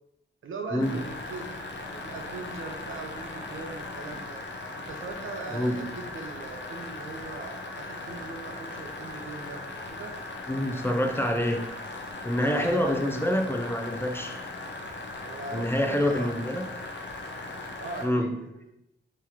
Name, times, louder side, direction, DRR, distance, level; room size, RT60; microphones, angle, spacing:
voice 1, 0.4-1.5 1.8-4.4 4.9-10.1 12.4-13.3 15.2-16.3 17.3-18.7, right 3 dB, 80° right, 3 dB, 0.6 m, -40 dB
sound 1, 0.8-18.1, left 2 dB, 65° left, 0.7 m, -39 dB
voice 2, 5.5-5.8 10.5-11.7 12.2-14.4 15.5-16.6 18.0-18.3, left 1 dB, 10° left, 3 dB, 0.5 m, -26 dB
3.9 x 3.1 x 2.8 m, 0.84 s
cardioid pair, 75°, 20 cm